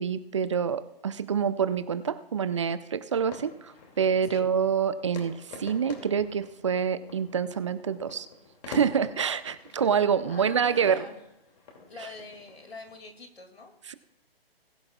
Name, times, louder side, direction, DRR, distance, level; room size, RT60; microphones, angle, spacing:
voice 1, 0.0-8.3 8.7-11.1 13.9-14.0, right 7 dB, 30° right, 14 dB, 0.4 m, -27 dB
sound 1, 3.1-13.1, left 3 dB, 40° left, 2.5 m, -47 dB
voice 2, 10.3-11.6 11.9-13.7, left 3 dB, 85° left, 4 dB, 2.5 m, -45 dB
20.5 x 10.5 x 2.4 m, 0.83 s
figure-of-eight pair, 145°, 30 cm